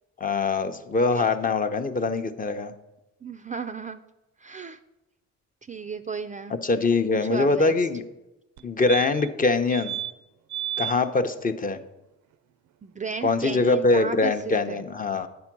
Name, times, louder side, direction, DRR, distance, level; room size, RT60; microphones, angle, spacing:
voice 1, 0.2-2.7 6.5-8.0 8.6-10.0 10.8-11.8 13.2-15.3, left 3 dB, 30° left, 8 dB, 0.7 m, -23 dB
voice 2, 3.2-4.0 4.4-4.8 5.7-6.5 7.1-7.7 12.8-14.8, right 5 dB, 25° right, 8 dB, 0.4 m, -34 dB
sound 1, 8.6-8.7 8.9-9.4 9.7-10.1 10.5-10.9 13.3-13.4 13.6-13.7, right 12 dB, 75° right, 0.5 m, -32 dB
9.6 x 4.5 x 6.0 m, 0.97 s
cardioid pair, 90°, 30 cm